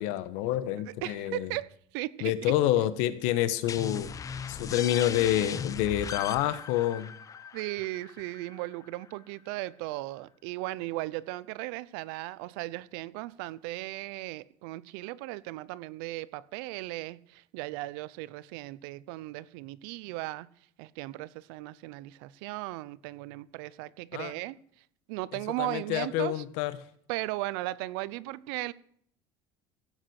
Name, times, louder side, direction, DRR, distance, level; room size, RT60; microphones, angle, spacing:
voice 1, 0.0-1.5 2.2-4.1 4.5-7.1 24.1-24.3 25.6-26.8, left 13 dB, 80° left, 1.2 m, -28 dB
voice 2, 0.9-2.5 7.5-20.5 20.8-24.6 25.1-26.4 27.1-28.7, right 18 dB, 90° right, 0.6 m, -37 dB
sound 1, 3.7-9.1, left 6 dB, 30° left, 0.8 m, -39 dB
16.5 x 7.6 x 6.4 m
cardioid pair, 130°, 12 cm